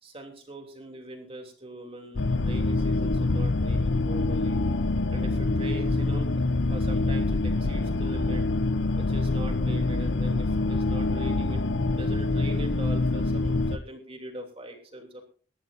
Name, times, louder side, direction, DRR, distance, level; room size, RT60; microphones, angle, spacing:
voice 1, 0.0-4.6 5.1-6.3 6.7-8.5 8.9-11.6 12.0-15.2, right 1 dB, 35° right, 3 dB, 3.1 m, -42 dB
sound 1, 2.2-13.8, left 2 dB, 85° left, 0.7 m, -25 dB
19.5 x 14.0 x 2.7 m, 0.38 s
head